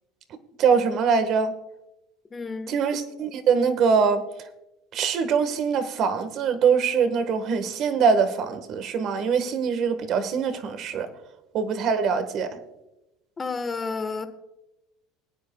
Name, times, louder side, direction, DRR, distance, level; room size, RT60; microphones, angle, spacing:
voice 1, 0.6-1.5 2.7-4.2 4.9-11.1 11.5-12.5, right 6 dB, 55° right, 10 dB, 1.3 m, -23 dB
voice 2, 2.3-2.8 13.4-14.3, left 4 dB, 25° left, 8 dB, 1.3 m, -31 dB
21.0 x 9.4 x 2.3 m, 0.95 s
supercardioid pair, 90°, 0 cm